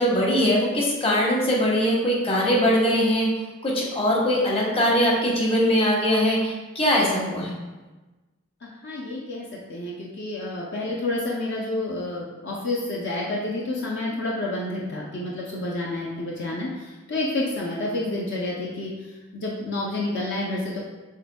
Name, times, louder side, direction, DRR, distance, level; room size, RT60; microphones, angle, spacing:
voice 1, 0.0-3.3 3.6-7.5, equal, 25° left, -3 dB, 0.9 m, -21 dB
voice 2, 8.6-18.9 19.3-20.8, left 2 dB, 55° left, -3 dB, 0.6 m, -29 dB
6.5 x 3.5 x 2.2 m, 1.2 s
head